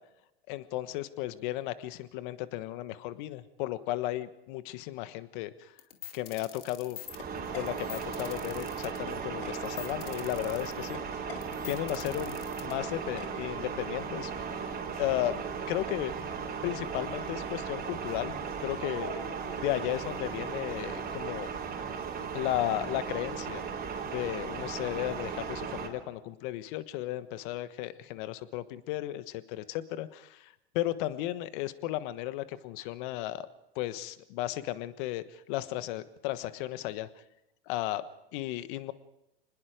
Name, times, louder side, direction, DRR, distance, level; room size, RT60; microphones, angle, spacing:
voice 1, 0.5-5.7 6.1-7.0 7.5-15.3 15.7-16.1 16.6-18.3 18.6-19.2 19.5-21.5 22.3-23.6 24.0-33.5 33.7-37.1 37.7-38.0 38.3-38.9, left 15 dB, 55° left, 13 dB, 1.3 m, -35 dB
sound 1, 5.8-13.3, left 11 dB, 75° left, 2.5 m, -44 dB
sound 2, 7.0-25.9, right 6 dB, 30° right, 3.8 m, -37 dB
25.5 x 20.0 x 5.1 m, 0.89 s
hypercardioid pair, 105°, 30 cm